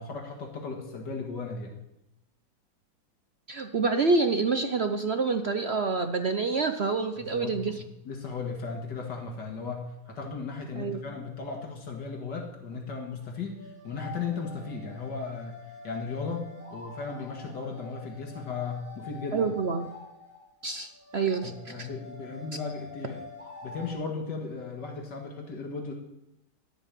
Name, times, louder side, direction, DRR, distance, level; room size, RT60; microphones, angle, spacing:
voice 1, 0.0-1.7 7.2-15.6 15.8-19.5 21.4-23.2 23.6-25.9, left 4 dB, 80° left, 2 dB, 2.5 m, -36 dB
voice 2, 3.5-7.7 10.7-11.0 19.3-19.9 20.6-21.5 21.8-21.9, right 4 dB, 50° right, 7 dB, 0.8 m, -27 dB
sound 1, 12.9-23.9, left 3 dB, 5° right, 5.4 m, -47 dB
12.5 x 7.8 x 9.2 m, 0.89 s
omnidirectional pair, 1.8 m